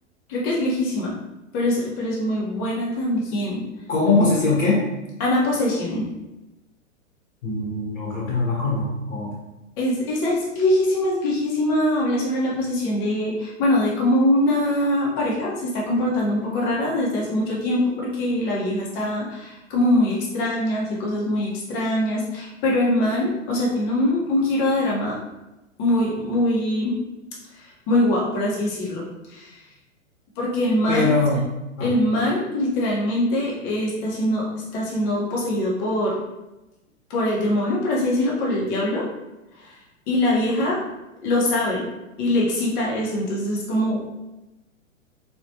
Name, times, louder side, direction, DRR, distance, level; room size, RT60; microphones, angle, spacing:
voice 1, 0.3-1.2 1.5-3.7 5.2-6.0 9.8-25.2 25.8-27.0 27.9-29.0 29.3-29.6 30.4-31.4 31.8-36.2 37.1-39.0 39.6-39.7 40.1-40.8 41.2-41.8 42.2-44.0, left 1 dB, 40° left, -4 dB, 1.4 m, -23 dB
voice 2, 3.9-4.8 7.4-9.3 30.9-31.4 31.8-31.9, left 3 dB, 70° left, -5 dB, 1.5 m, -21 dB
4.1 x 3.1 x 3.0 m, 0.98 s
figure-of-eight pair, 105°, 39 cm